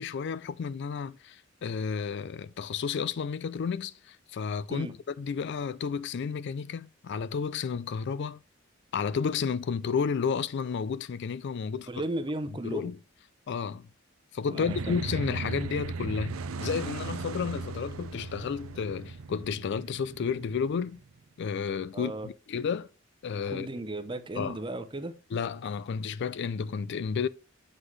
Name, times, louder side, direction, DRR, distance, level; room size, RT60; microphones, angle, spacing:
voice 1, 0.0-4.9 5.2-8.4 8.9-11.9 12.6-13.0 13.5-13.9 14.3-21.0 21.4-22.9 23.2-23.7 24.4-24.6 25.3-27.3, left 6 dB, 55° left, 0.4 m, -32 dB
voice 2, 11.9-12.9 14.5-14.9 21.9-22.3 23.5-25.2, right 2 dB, 25° right, 0.7 m, -35 dB
sound 1, 14.6-21.2, right 4 dB, 85° right, 0.5 m, -37 dB
7.9 x 5.8 x 3.2 m
head